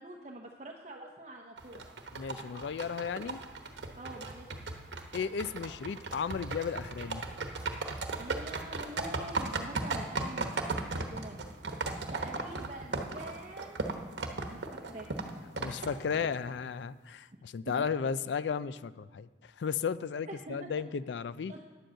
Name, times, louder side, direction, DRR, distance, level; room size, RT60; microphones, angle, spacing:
voice 1, 0.0-1.8 3.9-4.5 8.2-11.4 12.1-14.0 14.5-15.1 15.5-15.8 17.6-17.9 20.3-20.7 21.5-21.6, right 1 dB, 40° right, 1 dB, 0.8 m, -45 dB
sound 1, 1.6-16.5, right 3 dB, 75° right, 1.0 m, -37 dB
voice 2, 2.2-3.4 5.1-7.2 15.5-19.3 19.6-21.5, left 6 dB, 70° left, 15 dB, 0.4 m, -34 dB
10.0 x 7.8 x 7.5 m, 1.3 s
head